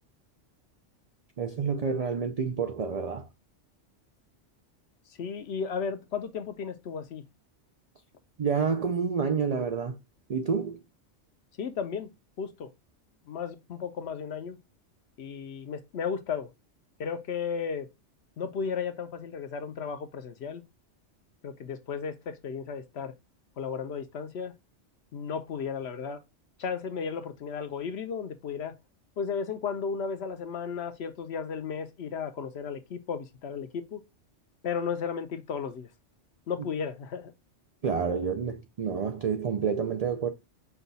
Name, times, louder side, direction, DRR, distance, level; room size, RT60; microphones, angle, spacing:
voice 1, 1.4-3.3 8.4-10.0 10.3-10.8 37.8-40.3, right 6 dB, 65° right, 0.3 m, -29 dB
voice 2, 5.1-7.2 11.6-12.1 12.4-12.7 13.3-14.6 15.2-16.5 17.0-17.9 18.4-20.6 21.4-23.1 23.6-24.5 25.1-26.2 26.6-28.8 29.2-34.0 34.6-35.9 36.5-37.3, left 6 dB, 65° left, 0.9 m, -34 dB
5.7 x 2.3 x 3.9 m
omnidirectional pair, 1.2 m